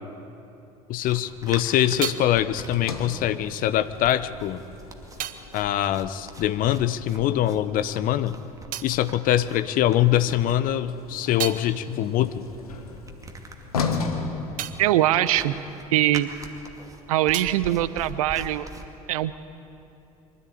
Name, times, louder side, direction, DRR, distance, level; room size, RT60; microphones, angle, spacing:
voice 1, 0.9-4.6 5.5-8.4 8.8-12.4, left 12 dB, 50° left, 14 dB, 0.9 m, -23 dB
sound 1, 1.0-18.8, right 1 dB, 15° right, 2.4 m, -44 dB
sound 2, 1.3-7.2 7.4-10.1 10.6-16.6 16.8-18.9, right 11 dB, 45° right, 1.0 m, -40 dB
Sliding door, 2.7-7.0 10.5-15.4, left 4 dB, 80° left, 1.4 m, -35 dB
voice 2, 14.8-15.5 15.9-16.3 17.1-18.7 19.1-19.4, right 14 dB, 70° right, 15 dB, 0.7 m, -22 dB
24.5 x 13.5 x 8.8 m, 2.9 s
figure-of-eight pair, 60°, 19 cm